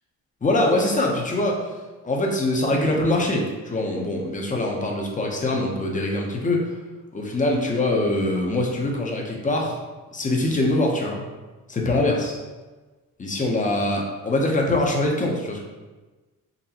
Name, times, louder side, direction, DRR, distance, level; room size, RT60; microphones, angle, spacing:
voice 1, 0.4-1.7 2.0-6.8 7.1-9.8 10.1-11.3 11.7-12.4 13.2-15.6, left 1 dB, 20° left, 0 dB, 0.6 m, -23 dB
4.0 x 3.4 x 2.8 m, 1.2 s
wide cardioid pair, 155°, 36 cm